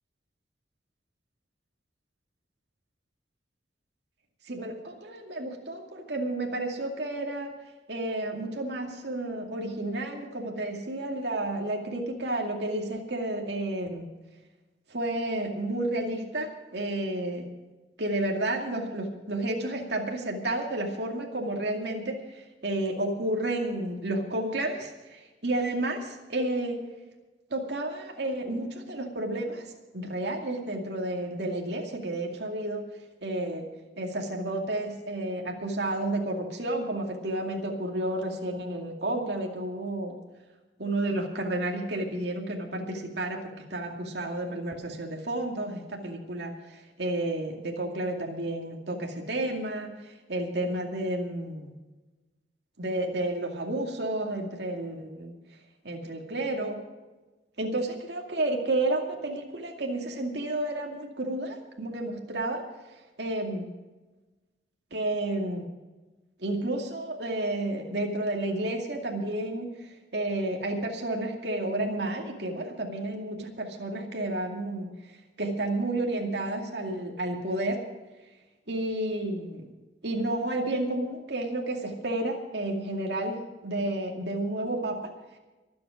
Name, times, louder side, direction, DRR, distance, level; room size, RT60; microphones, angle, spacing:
voice 1, 4.5-7.5 7.9-14.1 14.9-17.5 18.0-26.8 27.5-29.6 29.9-32.8 33.2-33.7 34.0-40.2 40.8-51.7 52.8-55.3 55.8-56.8 57.6-62.6 63.2-63.7 64.9-65.7 66.4-74.9 75.4-77.8 78.7-79.7 80.0-85.1, right 1 dB, 65° right, 1 dB, 2.3 m, -31 dB
24.0 x 8.7 x 5.1 m, 1.2 s
head